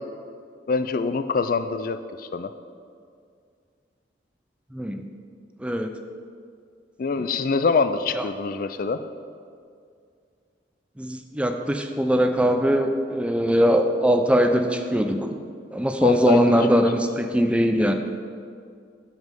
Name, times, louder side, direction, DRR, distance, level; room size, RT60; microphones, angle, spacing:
voice 1, 0.7-2.5 7.0-9.0 16.0-16.5, left 4 dB, 50° left, 11 dB, 0.4 m, -24 dB
voice 2, 4.7-5.1 5.6-5.9 7.2-7.3 8.2-8.3 11.0-15.4 15.7-17.9, equal, 5° right, 5 dB, 0.5 m, -21 dB
9.4 x 7.4 x 5.3 m, 2.3 s
head